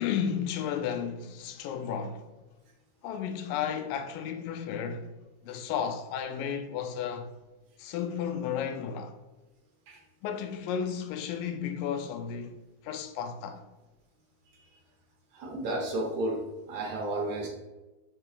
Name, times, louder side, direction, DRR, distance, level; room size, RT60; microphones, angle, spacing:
voice 1, 0.0-2.2 3.0-5.1 5.4-7.3 7.8-9.2 10.2-13.6, left 8 dB, 90° left, 2.4 m, -33 dB
voice 2, 15.3-16.4 16.7-17.5, right 1 dB, 65° right, 2.1 m, -31 dB
5.9 x 3.3 x 4.9 m
omnidirectional pair, 3.8 m